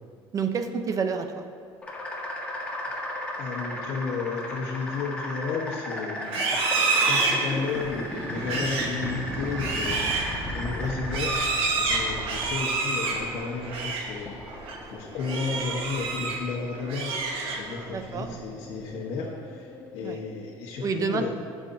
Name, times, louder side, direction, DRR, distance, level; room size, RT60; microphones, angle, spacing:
voice 1, 0.3-1.4 6.4-6.5 10.8-10.9 17.9-18.4 20.0-20.2 20.8-21.3, right 5 dB, 35° right, 7 dB, 0.7 m, -29 dB
sound 1, 1.8-20.6, left 1 dB, 15° left, 1.5 m, -36 dB
voice 2, 3.4-6.6 7.0-10.2 10.5-21.3, left 4 dB, 70° left, -5 dB, 1.3 m, -33 dB
Livestock farm animals working animals, 6.2-14.2 14.5-14.8 15.2-16.5 16.8-17.9, right 3 dB, 65° right, 1.4 m, -28 dB
14.0 x 7.1 x 2.8 m, 2.2 s
cardioid pair, 125°, 10 cm